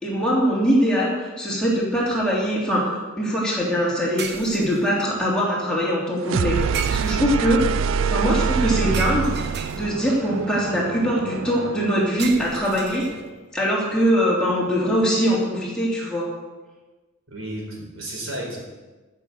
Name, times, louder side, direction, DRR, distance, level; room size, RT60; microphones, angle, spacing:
voice 1, 0.0-7.6 8.1-9.3 9.7-13.0 13.5-16.3, equal, 5° left, -6 dB, 3.2 m, -22 dB
sound 1, 2.1-2.3 4.2-5.0 6.7-7.5 8.9-10.2 12.2-13.5, right 6 dB, 55° right, 0.9 m, -34 dB
sound 2, 6.2-12.1, right 6 dB, 70° right, 0.4 m, -25 dB
voice 2, 17.3-18.6, right 1 dB, 85° right, -1 dB, 4.5 m, -32 dB
13.5 x 6.8 x 7.9 m, 1.2 s
head